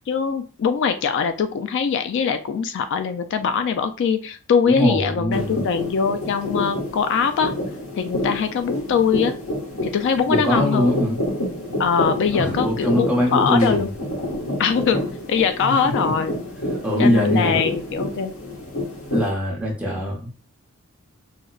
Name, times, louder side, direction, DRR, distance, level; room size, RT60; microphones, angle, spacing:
voice 1, 0.1-7.5 8.0-9.3 9.8-11.0 11.8-13.9 14.6-15.0 15.3-16.3 17.0-18.3, left 6 dB, 55° left, 0.3 m, -22 dB
voice 2, 4.6-5.6 10.3-11.2 12.3-13.9 15.6-16.1 16.8-17.6 19.1-20.3, equal, 5° right, 0.9 m, -22 dB
sound 1, 5.3-19.3, left 1 dB, 75° left, 1.3 m, -28 dB
4.8 x 2.1 x 2.3 m
head